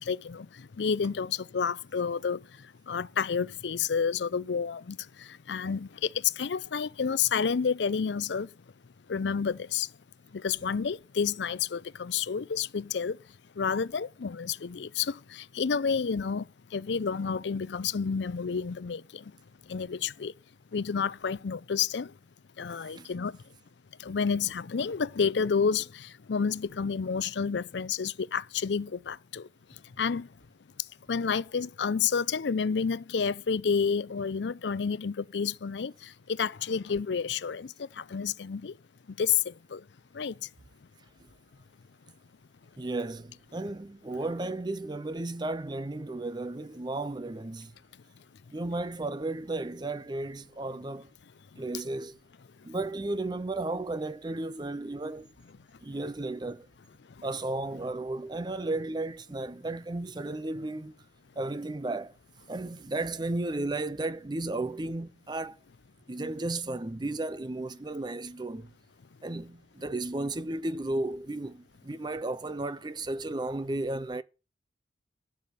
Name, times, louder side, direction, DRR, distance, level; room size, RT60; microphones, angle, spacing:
voice 1, 0.0-8.5 9.1-9.9 10.3-13.2 13.6-19.3 19.6-20.3 20.7-22.1 22.6-23.4 24.0-30.3 31.1-38.8 39.1-39.9 40.1-40.5 51.5-51.6 57.2-57.3, left 6 dB, 70° left, 0.5 m, -30 dB
voice 2, 42.8-47.7 48.5-51.1 51.6-52.2 52.6-55.3 55.8-56.7 57.2-60.9 61.4-62.2 62.5-65.6 66.1-68.7 69.2-74.2, right 2 dB, 25° right, 0.5 m, -34 dB
11.5 x 7.0 x 7.0 m
head